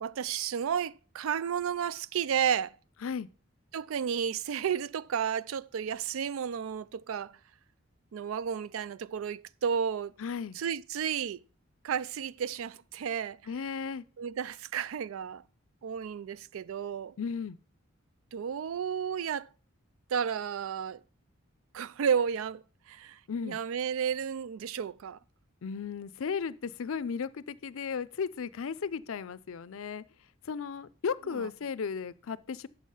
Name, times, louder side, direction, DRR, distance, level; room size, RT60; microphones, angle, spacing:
voice 1, 0.0-2.8 3.7-7.4 8.1-10.1 10.5-11.4 11.8-13.4 14.2-15.4 15.8-17.2 18.3-19.5 20.1-21.0 21.7-25.2 31.3-31.5, right 7 dB, 75° right, 0.4 m, -32 dB
voice 2, 10.2-10.6 13.5-14.0 17.2-17.6 23.3-23.6 25.6-30.0 30.5-32.7, left 6 dB, 75° left, 0.5 m, -35 dB
8.0 x 6.5 x 5.4 m
head